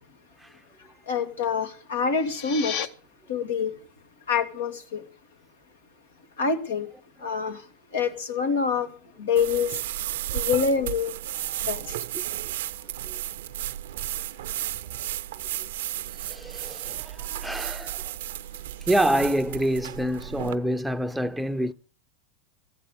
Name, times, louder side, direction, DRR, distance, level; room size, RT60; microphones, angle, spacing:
voice 1, 1.1-2.7 3.3-3.7 4.3-5.0 6.4-6.9 7.2-7.6 7.9-8.9 9.2-9.7 10.3-11.1 11.7-11.8, left 6 dB, 90° left, 2.3 m, -26 dB
sound 1, 2.0-2.9, left 8 dB, 65° left, 1.3 m, -33 dB
sound 2, 9.4-20.6, right 13 dB, 75° right, 0.6 m, -33 dB
voice 2, 16.1-18.2 18.9-21.7, right 1 dB, ahead, 0.6 m, -27 dB
14.5 x 8.3 x 8.2 m
hypercardioid pair, 110°, 0 cm